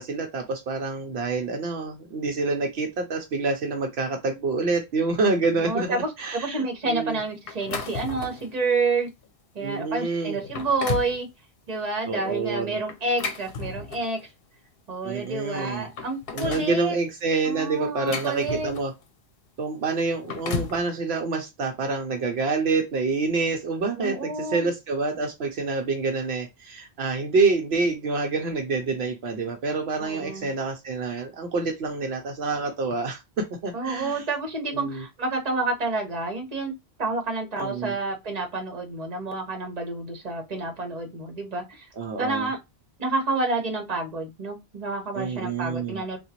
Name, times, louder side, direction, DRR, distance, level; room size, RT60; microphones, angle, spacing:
voice 1, 0.0-7.2 9.6-10.4 12.1-12.8 15.0-15.9 16.3-18.9 19.6-34.2 34.7-35.0 37.6-38.0 41.9-42.5 45.1-46.0, right 4 dB, 75° right, 0.9 m, -27 dB
voice 2, 5.5-6.0 6.3-9.1 9.5-11.3 11.7-14.2 14.9-16.9 17.4-18.7 24.0-24.7 30.0-30.5 33.7-36.7 37.0-41.9 42.2-42.6 43.0-46.2, right 3 dB, 40° right, 1.1 m, -29 dB
sound 1, 7.5-8.5 9.1-9.2 9.9-10.0 10.4-11.2 12.9-14.2 15.3-15.4 15.7-16.7 17.6-19.0 20.0-20.8, left 5 dB, 65° left, 0.9 m, -33 dB
3.7 x 2.4 x 2.8 m
omnidirectional pair, 1.1 m